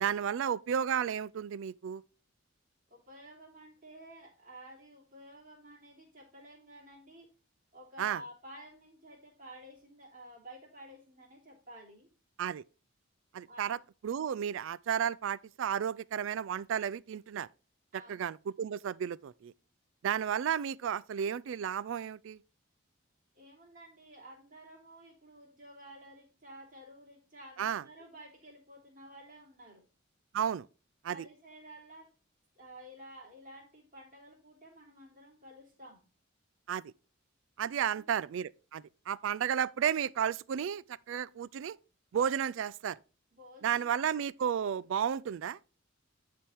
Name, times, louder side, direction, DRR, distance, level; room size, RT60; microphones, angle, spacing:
voice 1, 0.0-2.0 8.0-8.2 12.4-12.6 13.3-13.8 14.0-17.5 17.9-19.5 20.0-22.4 27.6-27.8 30.3-30.7 31.0-31.2 36.7-36.9 37.6-41.8 42.1-43.0 43.6-45.7, right 8 dB, 70° right, 0.3 m, -33 dB
voice 2, 2.9-7.3 7.7-12.1 13.5-13.8 17.9-18.3 23.3-29.8 31.1-32.1 32.6-36.1 37.8-38.1 43.3-43.9, right 1 dB, 40° right, 2.9 m, -52 dB
10.0 x 3.5 x 4.4 m
head